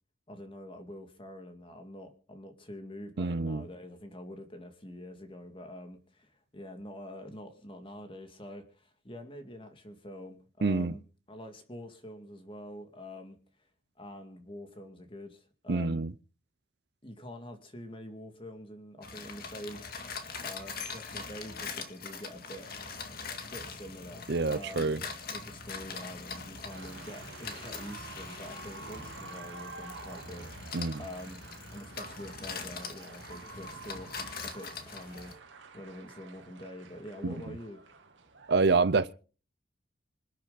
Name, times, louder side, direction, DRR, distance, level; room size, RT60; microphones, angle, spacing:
voice 1, 0.3-11.0 11.3-13.4 14.0-16.1 17.0-20.0 20.4-22.7 23.5-24.9 25.3-37.8, left 1 dB, 25° left, 2.3 m, -46 dB
voice 2, 3.2-3.6 10.6-10.9 15.7-16.1 24.3-25.0 30.7-31.0 37.2-37.4 38.5-39.1, right 4 dB, 55° right, 0.6 m, -27 dB
sound 1, 19.0-35.3, left 5 dB, 50° left, 2.1 m, -42 dB
sound 2, 26.7-38.6, right 3 dB, 75° right, 2.6 m, -48 dB
26.5 x 9.1 x 4.1 m
head